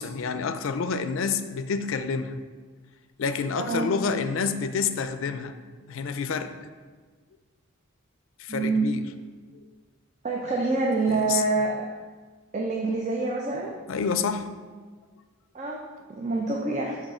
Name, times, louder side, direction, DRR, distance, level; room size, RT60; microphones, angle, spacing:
voice 1, 0.0-2.4 3.2-6.5 8.4-9.1 11.1-11.4 13.9-14.5, left 5 dB, 70° left, 10 dB, 0.4 m, -28 dB
voice 2, 3.6-3.9 8.5-8.9 10.2-11.7 12.5-13.7 15.5-15.8 16.1-17.0, right 3 dB, 35° right, -1 dB, 0.5 m, -26 dB
6.5 x 3.6 x 4.9 m, 1.4 s
head